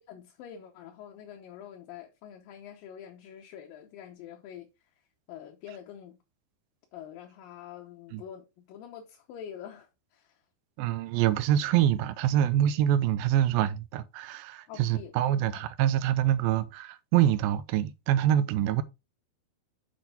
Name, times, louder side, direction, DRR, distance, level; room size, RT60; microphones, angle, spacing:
voice 1, 0.1-4.9 5.3-6.2 6.9-10.4 14.7-15.7, left 9 dB, 75° left, 2.5 m, -46 dB
voice 2, 10.8-18.8, right 11 dB, 85° right, 2.4 m, -25 dB
8.1 x 4.3 x 4.1 m
omnidirectional pair, 4.4 m